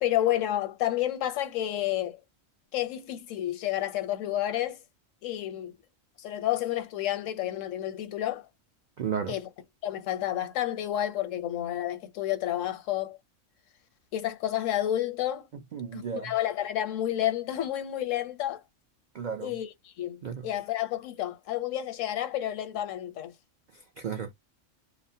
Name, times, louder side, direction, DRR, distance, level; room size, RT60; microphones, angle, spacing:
voice 1, 0.0-2.2 2.7-4.8 5.2-5.8 6.2-8.4 9.3-9.5 9.8-13.2 14.1-15.5 15.9-18.6 19.4-23.3, left 12 dB, 80° left, 1.0 m, -30 dB
voice 2, 9.0-9.3 15.7-16.3 19.1-19.5 20.2-20.4 24.0-24.3, right 7 dB, 75° right, 0.4 m, -33 dB
2.4 x 2.0 x 2.6 m
omnidirectional pair, 1.3 m